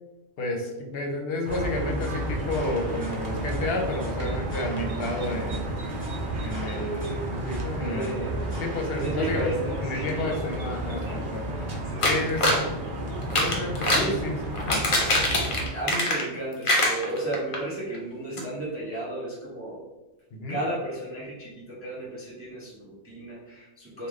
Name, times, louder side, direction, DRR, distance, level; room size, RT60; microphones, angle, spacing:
voice 1, 0.4-5.8 6.4-9.5 9.8-11.5 12.0-12.6 13.3-14.8 20.3-20.6, left 2 dB, 60° left, 2 dB, 0.9 m, -31 dB
sound 1, 1.4-15.7, right 1 dB, 55° right, 0.7 m, -32 dB
sound 2, 1.5-9.5, right 2 dB, 10° left, 1.0 m, -38 dB
voice 2, 7.8-10.4 11.0-11.2 11.5-12.2 13.9-14.2 15.7-19.8 20.5-24.1, right 1 dB, 15° right, -6 dB, 0.7 m, -34 dB
sound 3, 12.0-12.7 13.2-14.1 14.5-16.4 16.6-17.6 17.9-18.0 18.4-18.5, left 1 dB, 40° left, 0.5 m, -24 dB
3.2 x 2.4 x 3.6 m, 1.1 s
omnidirectional pair, 1.2 m